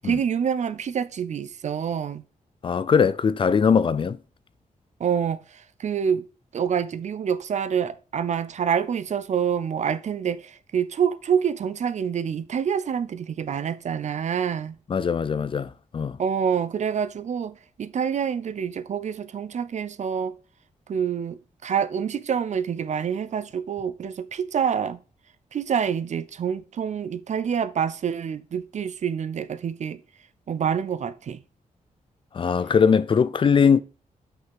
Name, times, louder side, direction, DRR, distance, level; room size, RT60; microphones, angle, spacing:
voice 1, 0.0-2.2 5.0-6.3 6.5-14.8 16.2-20.3 20.9-25.0 25.5-30.0 30.5-31.4, right 7 dB, 55° right, 0.5 m, -27 dB
voice 2, 2.6-4.2 14.9-16.2 32.3-33.8, left 6 dB, 40° left, 0.4 m, -20 dB
5.9 x 5.6 x 3.5 m
wide cardioid pair, 150°, 14 cm